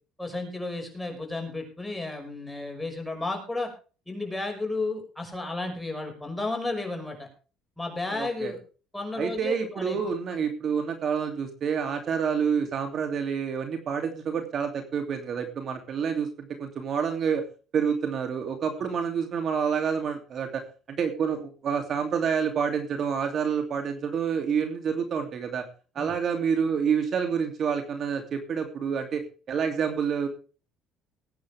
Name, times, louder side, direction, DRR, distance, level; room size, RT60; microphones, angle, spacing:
voice 1, 0.2-3.7 4.1-7.3 7.8-8.6 8.9-10.0 26.0-26.1, left 2 dB, 5° left, 3 dB, 5.7 m, -33 dB
voice 2, 8.1-8.5 9.2-17.4 17.7-25.6 25.9-30.3, right 6 dB, 50° right, 5 dB, 2.8 m, -28 dB
20.5 x 9.4 x 3.5 m, 0.36 s
cardioid pair, 115°, 0 cm